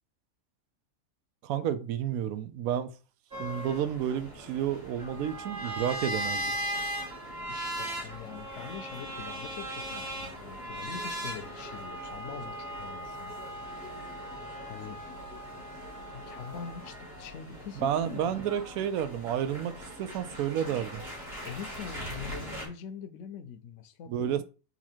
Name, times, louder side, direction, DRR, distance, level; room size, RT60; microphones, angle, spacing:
voice 1, 1.4-2.9 3.4-6.5 17.8-21.0 24.1-24.4, right 9 dB, 85° right, 1.0 m, -31 dB
sound 1, 3.3-22.7, equal, 35° right, 1.9 m, -39 dB
voice 2, 7.5-13.4 14.7-15.0 16.1-18.4 21.4-24.4, left 7 dB, 65° left, 0.9 m, -43 dB
4.0 x 2.9 x 4.4 m
omnidirectional pair, 1.4 m